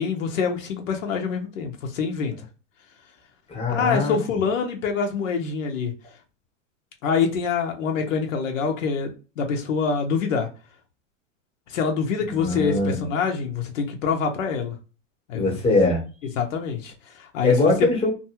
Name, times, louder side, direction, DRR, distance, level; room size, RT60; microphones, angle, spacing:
voice 1, 0.0-2.5 3.7-5.9 7.0-10.5 11.7-14.8 15.3-15.4 16.4-17.5, left 6 dB, 80° left, 0.8 m, -25 dB
voice 2, 3.5-4.2 12.3-13.1 15.3-16.0 17.4-18.1, left 2 dB, 15° left, 0.9 m, -21 dB
2.6 x 2.3 x 2.8 m
hypercardioid pair, 120°, 39 cm